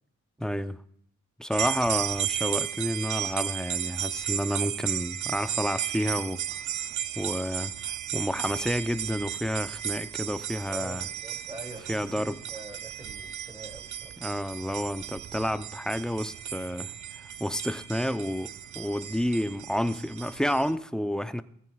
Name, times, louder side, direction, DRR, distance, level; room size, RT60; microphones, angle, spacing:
voice 1, 0.4-0.8 1.4-6.4 7.2-7.7 8.1-11.0 11.9-12.4 14.2-16.9 17.4-21.4, equal, ahead, 11 dB, 0.6 m, -30 dB
sound 1, 1.5-20.7, right 10 dB, 80° right, 0.6 m, -34 dB
voice 2, 10.7-14.3, right 1 dB, 15° right, 4 dB, 2.5 m, -45 dB
20.0 x 14.0 x 2.4 m, 0.67 s
wide cardioid pair, 130°, 30 cm